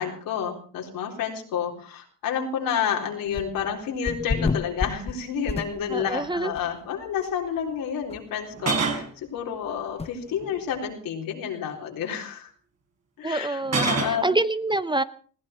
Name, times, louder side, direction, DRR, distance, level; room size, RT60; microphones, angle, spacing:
voice 1, 0.0-12.5 13.2-14.3, left 8 dB, 80° left, 2 dB, 3.9 m, -30 dB
sound 1, 3.3-3.7 4.0-6.2 6.6-6.7 7.2-7.3 7.6-7.7 8.1-8.2 10.0-10.1, left 4 dB, 20° left, 0.7 m, -29 dB
sound 2, 5.5-5.6 5.9-6.1 8.5-9.1 10.3-10.8 13.6-14.2, right 4 dB, 50° right, 5.0 m, -26 dB
voice 2, 5.9-6.5 13.2-15.0, right 2 dB, 15° right, 14 dB, 0.8 m, -26 dB
20.5 x 15.5 x 4.4 m, 0.43 s
cardioid pair, 75°, 33 cm